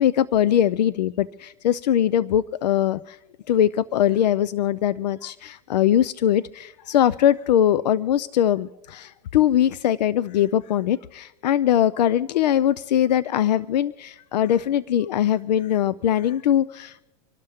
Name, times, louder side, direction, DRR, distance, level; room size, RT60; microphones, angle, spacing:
voice 1, 0.0-3.2 3.5-17.0, left 10 dB, 90° left, 17 dB, 0.5 m, -21 dB
26.5 x 12.5 x 3.6 m, 0.94 s
supercardioid pair, 150°, 21 cm